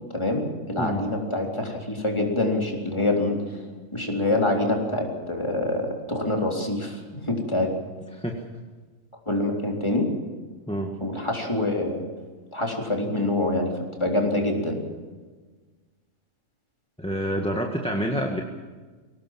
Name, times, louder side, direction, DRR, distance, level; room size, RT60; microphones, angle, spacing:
voice 1, 0.1-3.4 3.9-7.0 7.3-7.7 9.3-10.1 11.0-12.0 12.5-13.7 14.0-14.8, left 2 dB, 20° left, 0 dB, 3.8 m, -25 dB
voice 2, 8.1-8.4 10.7-10.9 17.0-18.4, equal, 5° left, 1 dB, 1.6 m, -27 dB
23.0 x 18.0 x 7.5 m, 1.4 s
omnidirectional pair, 1.3 m